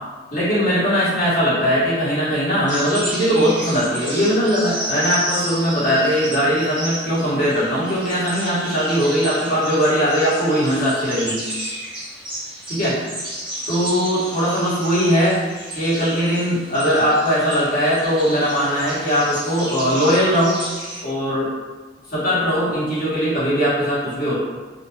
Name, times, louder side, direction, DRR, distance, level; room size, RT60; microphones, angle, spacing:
voice 1, 0.3-11.4 12.7-13.0 13.7-15.4 15.7-20.6 21.0-21.5 22.1-24.4, equal, 45° left, -10 dB, 1.1 m, -20 dB
sound 1, 2.7-21.0, right 1 dB, 25° right, 1.1 m, -32 dB
2.5 x 2.1 x 3.2 m, 1.4 s
head